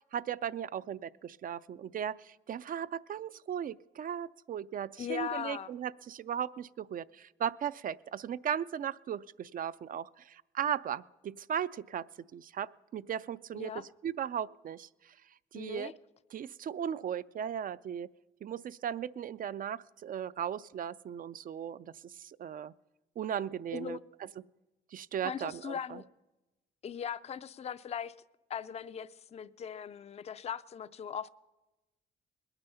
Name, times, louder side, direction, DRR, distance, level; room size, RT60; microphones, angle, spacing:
voice 1, 0.1-12.0 12.3-14.9 15.5-15.9 16.3-18.1 18.4-22.7 23.2-24.0 24.9-26.0, right 9 dB, 45° right, 0.4 m, -37 dB
voice 2, 5.0-5.7 13.5-13.8 15.5-15.9 23.7-24.0 25.2-26.0 26.8-28.1 28.5-31.3, left 8 dB, 35° left, 0.4 m, -39 dB
21.0 x 8.9 x 5.6 m
cardioid pair, 90°, 20 cm